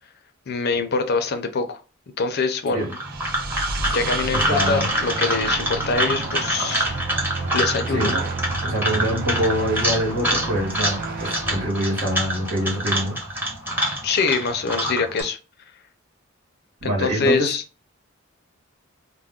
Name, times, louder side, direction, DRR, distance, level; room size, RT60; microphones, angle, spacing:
voice 1, 0.5-1.8 2.2-2.9 3.9-7.0 7.5-8.1 14.0-15.4 16.8-17.6, left 4 dB, 50° left, 0.5 m, -24 dB
sound 1, 2.8-15.2, right 1 dB, 10° right, 0.8 m, -26 dB
sound 2, 2.8-11.7, right 4 dB, 45° right, 0.3 m, -32 dB
voice 2, 4.3-4.9 7.9-8.3 8.6-13.2 16.8-17.5, equal, 70° right, 1.1 m, -25 dB
2.3 x 2.1 x 3.5 m
head